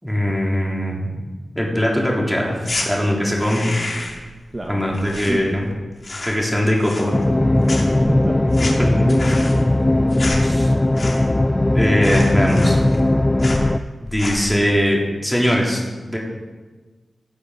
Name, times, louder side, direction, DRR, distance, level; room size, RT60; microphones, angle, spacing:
voice 1, 0.0-1.2 1.5-3.7 4.7-5.7 6.2-7.1 10.4-10.7 11.7-12.8 14.0-16.2, equal, 5° left, -3 dB, 3.2 m, -21 dB
sound 1, 2.6-2.9 3.3-4.3 4.5-5.7 6.0-6.5 6.8-7.4 7.6-11.4 11.7-11.8 12.0-13.1 13.4-13.7 14.1-14.5, left 2 dB, 50° left, 2.4 m, -30 dB
voice 2, 3.5-4.1 4.5-5.7 7.9-8.4 8.7-9.7, right 1 dB, 30° right, 1 dB, 1.1 m, -29 dB
sound 2, 7.1-13.8, left 1 dB, 20° left, 0.4 m, -18 dB
16.5 x 6.7 x 5.5 m, 1.3 s
wide cardioid pair, 75°, 0 cm